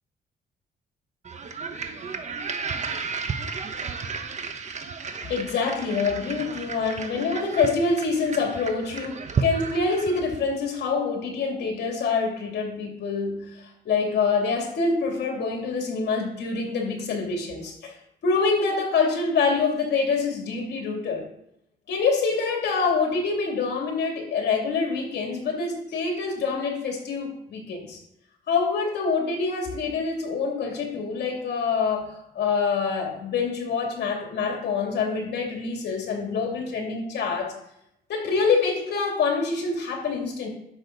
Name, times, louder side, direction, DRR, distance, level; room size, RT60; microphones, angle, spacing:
sound 1, 1.2-10.6, right 5 dB, 40° right, 1.0 m, -33 dB
voice 1, 5.3-17.9 18.2-21.2 21.9-28.0 28.5-37.5 38.1-40.5, left 4 dB, 80° left, 0 dB, 2.8 m, -26 dB
10.5 x 7.2 x 4.0 m, 0.78 s
cardioid pair, 110°, 17 cm